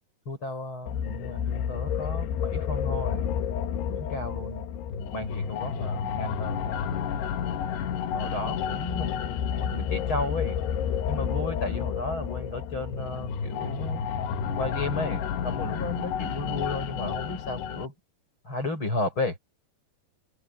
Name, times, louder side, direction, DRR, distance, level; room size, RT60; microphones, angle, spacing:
voice 1, 0.3-3.2 3.9-4.6 5.1-6.8 8.1-9.2 9.6-10.6 11.1-14.0 14.5-17.9 18.4-19.4, left 2 dB, 25° left, 7.7 m, -33 dB
sound 1, 0.9-17.9, left 8 dB, 75° left, 3.6 m, -30 dB
open air
omnidirectional pair, 5.0 m